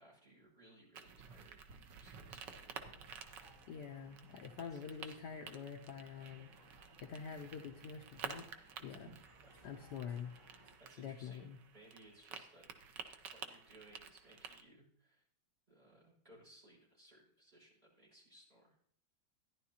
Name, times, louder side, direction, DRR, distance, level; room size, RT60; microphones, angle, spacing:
voice 1, 0.0-2.8 4.6-5.4 9.0-9.1 9.4-9.7 10.5-11.5 11.7-12.7 13.3-15.2 15.7-18.8, right 1 dB, 20° right, -5 dB, 5.8 m, -63 dB
sound 1, 0.9-14.6, right 6 dB, 70° right, 1.4 m, -52 dB
sound 2, 2.4-10.8, right 1 dB, 45° right, 2.4 m, -64 dB
voice 2, 3.7-6.5 7.0-8.4 8.8-9.1 9.6-10.3 11.0-11.6, left 7 dB, 65° left, 4 dB, 1.2 m, -46 dB
14.0 x 10.5 x 2.8 m, 0.63 s
omnidirectional pair, 2.1 m